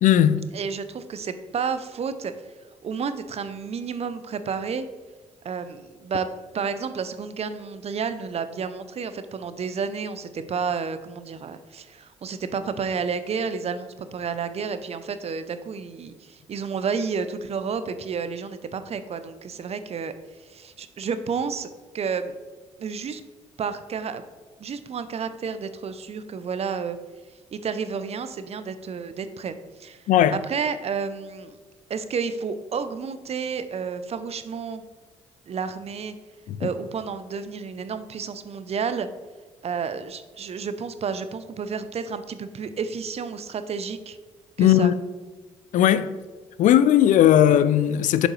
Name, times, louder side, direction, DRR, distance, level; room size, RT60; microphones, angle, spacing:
voice 1, 0.0-0.4 30.1-30.4 36.5-36.7 44.6-44.9 45.7-46.1 46.6-48.3, left 11 dB, 65° left, 0.4 m, -17 dB
voice 2, 0.5-2.3 2.8-4.9 5.4-6.3 6.5-21.7 21.9-22.3 22.8-23.2 23.6-24.3 24.6-27.0 27.5-31.6 31.9-34.8 35.5-36.1 36.6-39.1 39.6-44.2 44.6-44.9, right 6 dB, 50° right, 0.6 m, -31 dB
7.4 x 5.0 x 3.2 m
hypercardioid pair, 50°, 14 cm